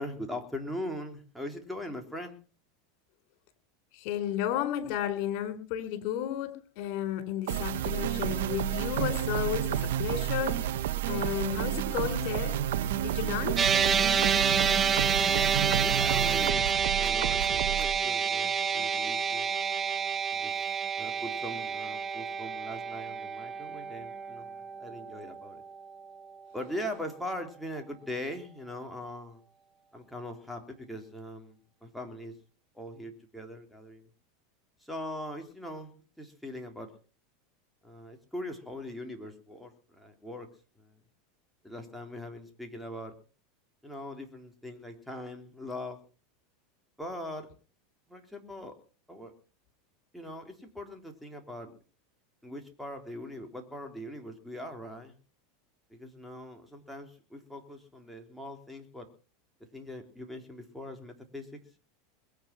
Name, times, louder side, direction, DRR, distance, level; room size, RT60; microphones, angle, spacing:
voice 1, 0.0-2.4 15.8-19.5 20.3-25.6 26.5-29.4 29.9-32.4 32.7-34.1 34.8-35.9 36.2-36.9 37.8-40.5 40.8-40.9 41.6-43.1 43.8-46.0 47.0-47.5 48.1-48.8 49.1-49.3 50.1-51.8 52.4-55.1 55.9-59.1 59.7-61.6, left 1 dB, ahead, 3 dB, 3.7 m, -41 dB
voice 2, 3.9-10.6 11.1-12.6 12.9-13.7, left 11 dB, 60° left, 9 dB, 4.5 m, -33 dB
sound 1, 7.5-18.0, right 12 dB, 75° right, 1.8 m, -30 dB
sound 2, 13.6-26.0, right 6 dB, 25° right, 0.9 m, -29 dB
22.0 x 9.1 x 6.0 m, 0.38 s
hypercardioid pair, 105°, 0 cm